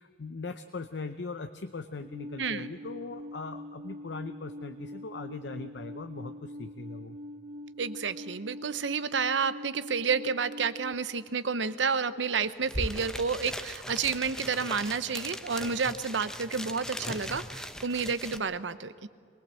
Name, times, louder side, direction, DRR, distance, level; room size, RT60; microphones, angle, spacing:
voice 1, 0.0-7.2, left 3 dB, 65° left, 9 dB, 0.7 m, -40 dB
Alarm, 2.0-10.9, left 1 dB, 30° right, 0.9 m, -44 dB
voice 2, 7.8-19.1, right 5 dB, 85° right, 14 dB, 0.8 m, -30 dB
sound 1, 12.4-12.5 12.6-18.4, equal, 5° left, 0.8 m, -39 dB
22.0 x 19.5 x 7.7 m, 2.2 s
head